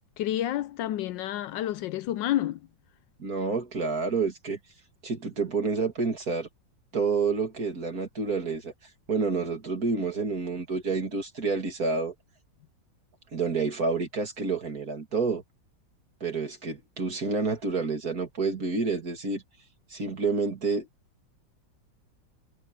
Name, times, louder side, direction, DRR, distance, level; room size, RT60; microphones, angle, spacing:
voice 1, 0.2-2.6, left 12 dB, 75° left, 1.2 m, -29 dB
voice 2, 3.2-4.6 5.0-6.5 6.9-8.7 9.1-12.1 13.3-15.4 16.2-19.4 19.9-20.9, right 4 dB, 50° right, 3.1 m, -28 dB
omnidirectional pair, 2.1 m